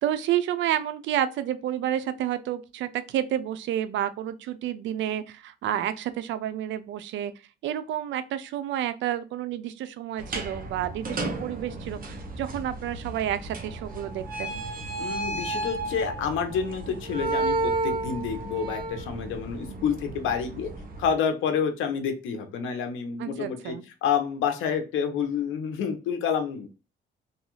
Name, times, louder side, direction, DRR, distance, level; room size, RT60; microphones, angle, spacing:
voice 1, 0.0-7.3 7.6-14.6 19.7-19.9 23.2-23.8, right 11 dB, 75° right, 0.4 m, -30 dB
sound 1, 10.2-21.1, right 2 dB, 45° right, 0.8 m, -33 dB
voice 2, 15.0-20.7 21.0-23.7 24.0-26.7, left 7 dB, 85° left, 0.7 m, -28 dB
2.6 x 2.3 x 3.0 m
cardioid pair, 90°, 20 cm